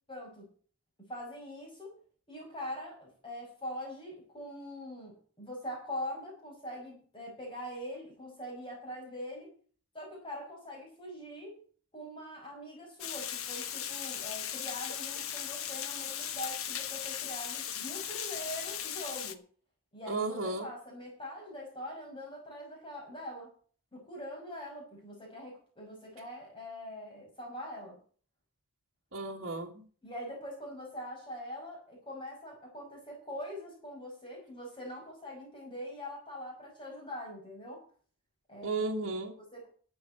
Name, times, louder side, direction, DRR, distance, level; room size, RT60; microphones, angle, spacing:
voice 1, 0.1-0.5 1.1-2.0 2.3-9.5 9.9-11.6 11.9-19.4 19.9-23.5 23.9-28.0 30.0-37.8 38.5-38.8 39.4-39.7, left 1 dB, 20° left, -1 dB, 5.9 m, -43 dB
Water, 13.0-19.3, left 9 dB, 75° left, 1.3 m, -37 dB
voice 2, 20.1-20.7 29.1-29.8 38.6-39.3, right 3 dB, 60° right, -2 dB, 1.9 m, -34 dB
12.5 x 7.7 x 7.9 m, 0.43 s
head